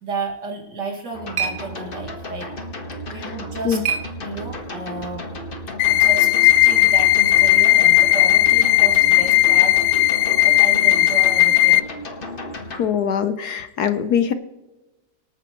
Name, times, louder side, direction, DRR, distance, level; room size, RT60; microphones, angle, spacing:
voice 1, 0.0-2.5 3.1-3.8 4.2-5.2 5.8-9.8 10.4-11.8, right 3 dB, 65° right, 1 dB, 2.8 m, -32 dB
sound 1, 0.6-4.8, right 6 dB, 45° right, 1.4 m, -33 dB
sound 2, 1.1-12.8, left 1 dB, 30° left, 1.4 m, -33 dB
sound 3, 5.8-11.8, left 15 dB, 80° left, 1.3 m, -15 dB
voice 2, 12.8-14.3, left 8 dB, 65° left, 10 dB, 1.1 m, -22 dB
25.5 x 9.2 x 3.1 m, 1.0 s
omnidirectional pair, 2.0 m